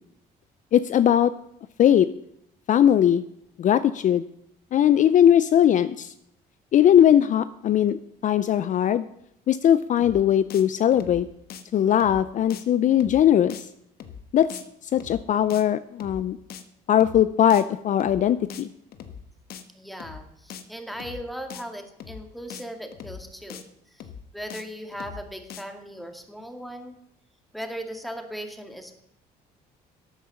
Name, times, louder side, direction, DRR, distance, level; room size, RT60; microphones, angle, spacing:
voice 1, 0.7-1.3 1.8-2.1 2.7-3.2 3.6-4.2 4.7-6.1 6.7-9.0 9.5-11.3 11.7-13.7 14.3-14.5 14.9-16.4 16.9-18.7, left 10 dB, 50° left, 15 dB, 0.5 m, -19 dB
sound 1, 10.0-10.2 10.5-10.6 10.9-11.2 11.5-11.6 12.0-12.2 12.5-12.6 12.9-13.2 13.5-13.6 14.0-14.2 14.5-14.6 14.9-15.2 15.5-15.6 16.0-16.2 16.5-16.6 16.9-17.2 17.5-17.6 18.0-18.2 18.5-18.6 18.9-19.2 19.5-19.6 20.0-20.2 20.5-20.6 20.9-21.2 21.5-21.6 22.0-22.2 22.5-22.6 22.9-23.2 23.5-23.6 24.0-24.2 24.5-24.6 24.9-25.2 25.5-25.6, left 8 dB, 65° left, 1.3 m, -40 dB
voice 2, 19.7-23.6 23.9-27.0 27.5-29.0, equal, ahead, 5 dB, 2.0 m, -38 dB
12.0 x 8.6 x 7.1 m, 0.74 s
cardioid pair, 110°, 17 cm